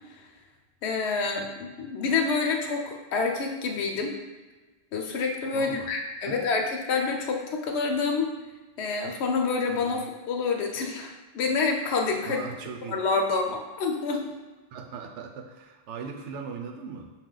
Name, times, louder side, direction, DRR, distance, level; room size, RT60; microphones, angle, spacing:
voice 1, 0.8-4.1 4.9-8.3 8.8-12.4 12.9-14.3, left 4 dB, 70° left, 2 dB, 0.9 m, -27 dB
voice 2, 5.5-5.9 6.2-6.4 9.7-10.1 12.2-13.0 14.7-17.1, right 6 dB, 90° right, 3 dB, 0.9 m, -39 dB
5.8 x 2.4 x 3.8 m, 1.3 s
omnidirectional pair, 1.2 m